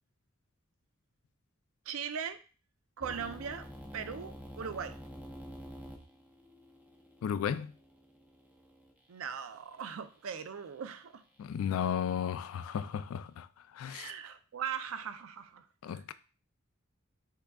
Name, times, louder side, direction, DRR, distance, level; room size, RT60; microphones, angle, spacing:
voice 1, 1.9-2.4 3.0-3.7 3.9-4.9 9.1-11.2 13.9-16.0, right 7 dB, 85° right, 0.5 m, -39 dB
sound 1, 3.0-8.9, equal, 5° right, 0.5 m, -48 dB
voice 2, 7.2-7.7 11.4-13.5 13.7-14.1 15.8-16.1, left 8 dB, 85° left, 0.3 m, -34 dB
5.6 x 3.6 x 2.3 m
head